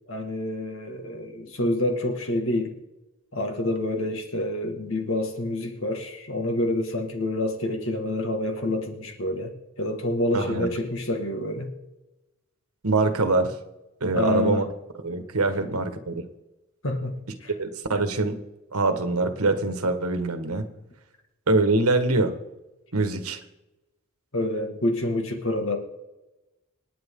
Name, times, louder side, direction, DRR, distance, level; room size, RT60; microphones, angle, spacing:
voice 1, 0.1-2.8 3.3-11.7 14.1-14.7 16.8-17.2 17.4-17.5 24.3-25.8, left 1 dB, 60° left, 4 dB, 1.9 m, -27 dB
voice 2, 10.3-10.7 12.8-13.5 14.0-14.6 15.0-16.2 17.6-18.4 18.7-20.7 21.5-22.3 22.9-23.4, right 3 dB, 85° right, 8 dB, 1.5 m, -24 dB
27.0 x 9.3 x 3.8 m, 1.0 s
head